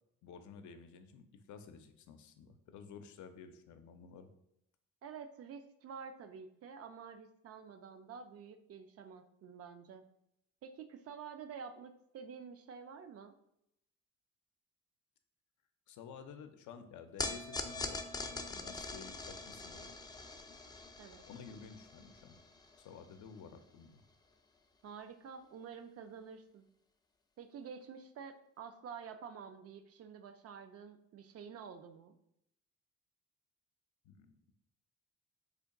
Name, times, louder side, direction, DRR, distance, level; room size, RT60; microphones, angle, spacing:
voice 1, 0.2-4.3 15.9-19.9 21.3-22.4 22.8-24.0 34.0-34.4, left 6 dB, 75° left, 8 dB, 0.5 m, -52 dB
voice 2, 5.0-10.0 10.6-13.3 21.0-21.3 24.8-26.7 27.4-32.2, right 6 dB, 50° right, 8 dB, 0.4 m, -49 dB
sound 1, 17.2-23.6, left 3 dB, 15° left, 0.3 m, -43 dB
3.4 x 2.2 x 3.6 m, 0.79 s
cardioid pair, 90°, 30 cm